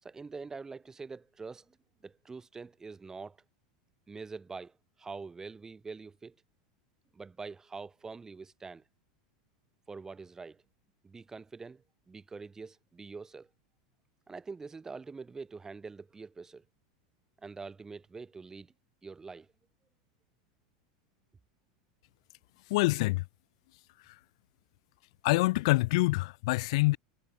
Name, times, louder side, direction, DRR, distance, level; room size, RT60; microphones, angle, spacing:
voice 1, 0.0-3.4 4.1-6.4 7.1-8.8 9.9-10.6 11.0-13.5 14.3-16.6 17.4-18.7 19.0-19.5, right 4 dB, 15° right, 5.3 m, -45 dB
voice 2, 22.7-23.2 24.1-24.2 25.2-27.0, left 22 dB, 65° left, 0.6 m, -26 dB
hypercardioid pair, 100°, 3 cm